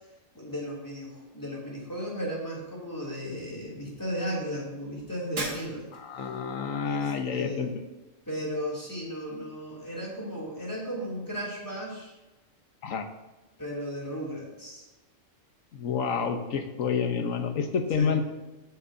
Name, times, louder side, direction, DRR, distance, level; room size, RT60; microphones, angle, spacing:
voice 1, 0.3-5.9 6.8-7.7 8.3-12.2 13.6-14.9 17.9-18.1, equal, 15° left, -4 dB, 2.9 m, -35 dB
Shatter, 5.4-6.2, right 2 dB, 70° right, 1.9 m, -36 dB
voice 2, 5.9-7.7 12.8-13.1 15.7-18.2, left 6 dB, 90° left, 6 dB, 1.4 m, -29 dB
17.5 x 6.6 x 2.8 m, 1.1 s
omnidirectional pair, 1.3 m